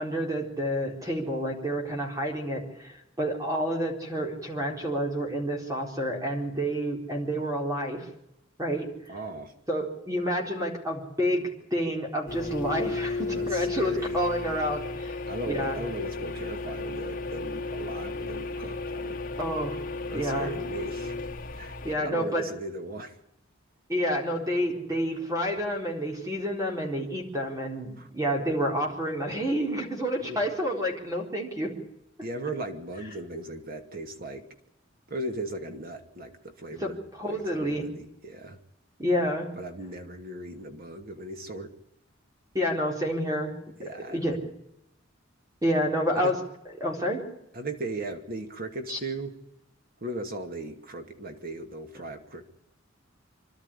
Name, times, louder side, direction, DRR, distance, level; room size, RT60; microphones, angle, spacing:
voice 1, 0.0-8.1 8.6-8.9 9.7-15.1 15.5-15.7 19.4-19.7 20.1-20.5 21.8-22.5 23.9-31.7 36.8-36.9 37.2-37.9 39.0-39.5 42.5-43.5 44.1-44.4 45.6-46.4 46.8-47.2 48.9-49.0, equal, 20° right, 0 dB, 4.1 m, -29 dB
voice 2, 9.1-9.5 13.3-14.2 15.3-19.2 20.1-21.2 21.5-23.2 28.0-28.1 30.2-30.4 32.2-34.5 35.1-37.0 37.3-38.6 39.6-41.7 43.8-44.4 46.2-46.3 47.5-49.3 50.0-52.5, right 2 dB, 50° right, 5 dB, 2.4 m, -37 dB
sound 1, 12.3-22.0, left 3 dB, 45° left, 2.3 m, -34 dB
26.0 x 12.5 x 9.9 m, 0.83 s
head